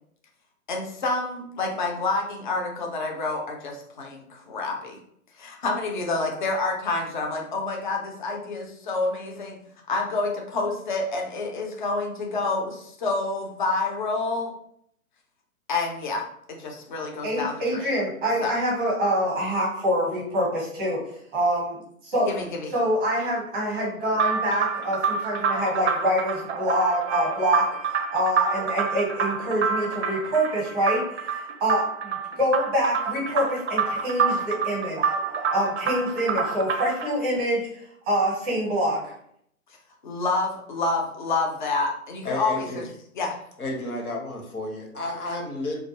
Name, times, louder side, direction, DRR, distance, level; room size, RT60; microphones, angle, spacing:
voice 1, 0.7-5.0 5.4-9.6 9.9-14.5 15.7-16.2 16.5-17.8 18.4-18.5 22.3-22.7 40.0-42.8 43.2-43.4, left 3 dB, 35° left, 1 dB, 0.4 m, -28 dB
voice 2, 17.2-21.0 21.3-22.3 22.7-27.6 28.1-35.1 35.5-37.7 38.1-39.0, equal, 10° right, -4 dB, 0.7 m, -25 dB
sound 1, 24.2-37.1, right 5 dB, 55° right, 0.4 m, -27 dB
voice 3, 42.2-42.9 43.6-45.8, left 1 dB, 85° left, 2 dB, 0.9 m, -32 dB
2.2 x 2.2 x 2.8 m, 0.69 s
figure-of-eight pair, 130°, 43 cm